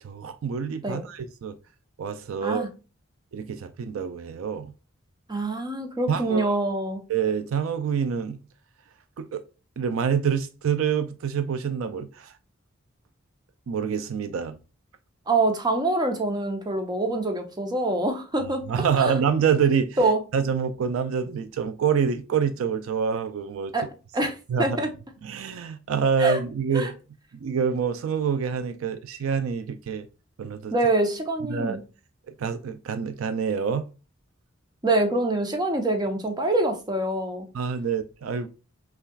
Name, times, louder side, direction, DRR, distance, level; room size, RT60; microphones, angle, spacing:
voice 1, 0.0-1.6 2.0-2.7 3.3-4.7 6.1-6.6 7.1-8.4 9.2-9.4 9.8-12.3 13.7-14.6 18.7-20.0 20.3-23.7 24.5-24.7 25.2-26.9 27.4-30.1 30.4-30.7 31.5-31.8 32.4-33.8 37.5-38.5, right 6 dB, 75° right, 0.4 m, -26 dB
voice 2, 5.3-7.0 15.3-18.6 19.0-19.2 20.0-20.2 23.7-23.9 24.1-24.9 26.2-26.4 26.7-26.9 30.7-31.8 34.8-37.5, right 2 dB, 20° right, 0.7 m, -25 dB
5.5 x 2.4 x 2.3 m
head